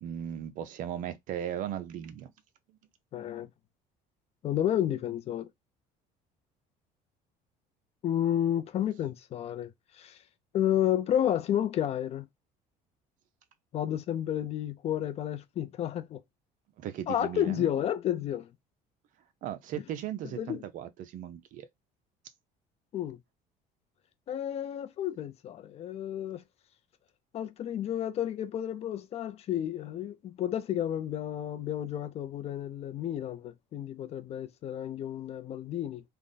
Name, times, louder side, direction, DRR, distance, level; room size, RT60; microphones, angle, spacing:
voice 1, 0.0-2.3 16.8-17.7 19.4-21.7, right 10 dB, 55° right, 0.6 m, -37 dB
voice 2, 3.1-3.5 4.4-5.5 8.0-10.2 10.5-12.3 13.7-16.2 17.1-18.5 20.4-20.6 22.9-23.2 24.3-26.4 27.3-36.0, left 11 dB, 40° left, 0.4 m, -31 dB
3.4 x 2.1 x 3.9 m
cardioid pair, 135°, 16 cm